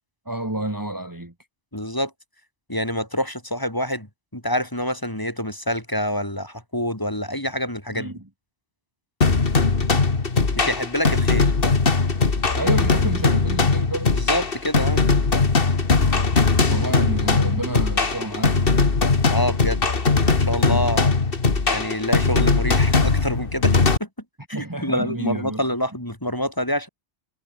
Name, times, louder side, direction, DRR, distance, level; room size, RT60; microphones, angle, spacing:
voice 1, 0.3-1.3 7.9-8.2 12.5-14.1 16.7-18.7 24.5-25.6, right 1 dB, 15° right, 2.2 m, -29 dB
voice 2, 1.7-2.1 2.7-8.1 10.6-11.5 14.1-15.0 19.3-19.8 20.4-21.1 21.7-24.1 24.5-26.9, equal, 20° left, 4.4 m, -26 dB
sound 1, 9.2-24.0, left 4 dB, 50° left, 2.1 m, -20 dB
omnidirectional pair, 1.2 m